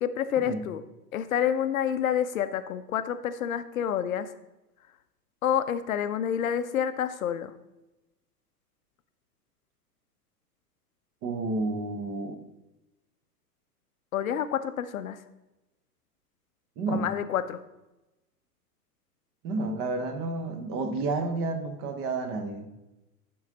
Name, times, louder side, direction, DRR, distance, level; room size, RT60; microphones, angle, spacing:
voice 1, 0.0-0.8 1.1-4.3 5.4-7.5 14.1-15.2 16.9-17.6, left 9 dB, 60° left, 12 dB, 0.5 m, -28 dB
voice 2, 11.2-12.4 16.8-17.1 19.4-22.7, right 3 dB, 30° right, 6 dB, 0.8 m, -30 dB
10.5 x 3.8 x 3.8 m, 0.99 s
figure-of-eight pair, 100°, 48 cm